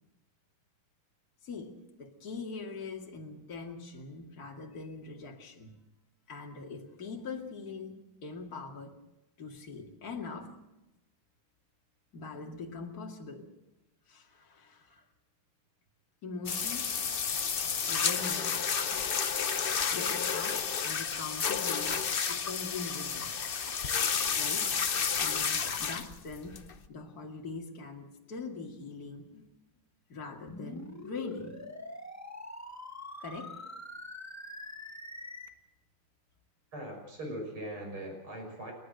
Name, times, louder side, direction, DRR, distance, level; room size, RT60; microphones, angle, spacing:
voice 1, 1.4-5.8 6.3-9.0 9.4-10.5 12.1-13.5 14.1-15.0 16.2-17.5 17.8-18.6 18.9-19.1 19.5-22.0 22.3-23.3 24.3-24.7 25.2-26.6 26.9-29.4 30.1-31.5 33.2-33.6, left 4 dB, 45° left, 0 dB, 2.7 m, -42 dB
sound 1, 16.5-26.9, left 6 dB, 75° left, 0.5 m, -31 dB
sound 2, 30.5-35.5, left 1 dB, 10° left, 1.1 m, -44 dB
voice 2, 36.7-38.7, right 1 dB, 80° right, 2 dB, 6.8 m, -40 dB
30.0 x 11.5 x 7.8 m, 0.98 s
omnidirectional pair, 2.3 m